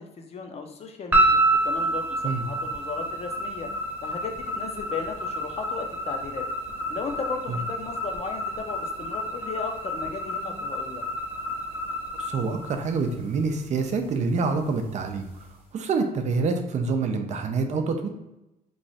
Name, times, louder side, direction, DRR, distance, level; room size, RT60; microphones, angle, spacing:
voice 1, 0.0-3.7 4.0-6.4 6.9-11.0, left 5 dB, 40° left, 4 dB, 0.6 m, -36 dB
sound 1, 1.1-13.4, right 1 dB, 10° right, 1.0 m, -28 dB
voice 2, 12.2-15.3 15.7-18.1, right 4 dB, 45° right, 6 dB, 0.5 m, -26 dB
3.1 x 2.3 x 4.0 m, 0.92 s
cardioid pair, 110°, 17 cm